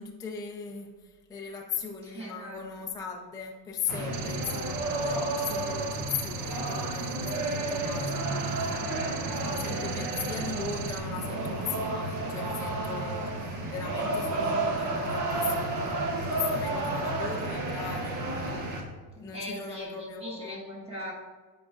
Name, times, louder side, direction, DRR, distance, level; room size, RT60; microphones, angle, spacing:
voice 1, 0.0-8.8 9.4-18.6 19.2-20.6, left 6 dB, 10° left, 0 dB, 0.4 m, -38 dB
voice 2, 2.0-2.6 4.0-4.1 8.7-10.0 12.8-13.2 16.5-16.9 19.3-21.1, equal, 15° right, -5 dB, 1.7 m, -42 dB
sound 1, 3.9-18.8, right 2 dB, 40° right, 1.1 m, -31 dB
sound 2, 4.1-11.0, right 11 dB, 70° right, 0.7 m, -41 dB
9.5 x 4.9 x 2.5 m, 1.4 s
cardioid pair, 135°, 47 cm